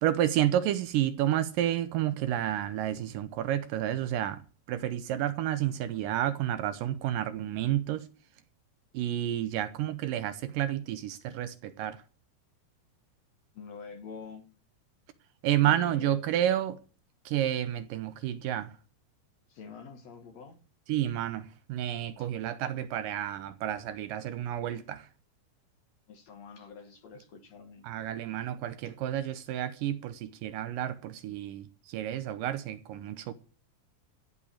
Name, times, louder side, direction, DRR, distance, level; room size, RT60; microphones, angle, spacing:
voice 1, 0.0-4.4 4.7-8.1 8.9-12.0 15.4-16.8 17.3-18.7 20.9-25.1 27.8-33.3, right 12 dB, 75° right, 2.2 m, -30 dB
voice 2, 13.5-14.5 15.6-16.1 19.5-20.6 22.2-22.3 26.1-27.8 28.8-29.0, left 5 dB, 55° left, 2.2 m, -46 dB
15.0 x 5.4 x 8.6 m
omnidirectional pair, 4.3 m